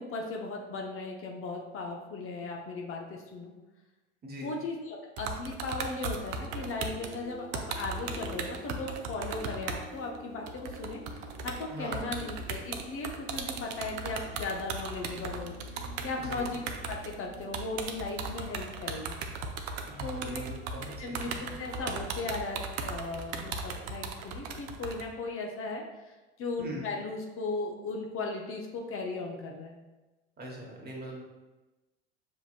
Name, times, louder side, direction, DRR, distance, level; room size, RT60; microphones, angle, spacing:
voice 1, 0.0-3.5 4.4-11.0 11.4-19.1 20.0-20.4 21.0-29.8, left 3 dB, 35° left, 0 dB, 0.7 m, -37 dB
voice 2, 4.2-4.6 11.7-12.1 16.2-16.5 19.9-21.4 26.6-26.9 30.4-31.2, equal, 25° right, -1 dB, 1.2 m, -42 dB
sound 1, 5.2-9.9 10.1-10.2 10.5-25.0, right 4 dB, 65° right, 0.6 m, -37 dB
sound 2, 6.3-18.8, equal, 15° left, 1.0 m, -50 dB
6.2 x 2.8 x 2.4 m, 1.1 s
hypercardioid pair, 80°, 35 cm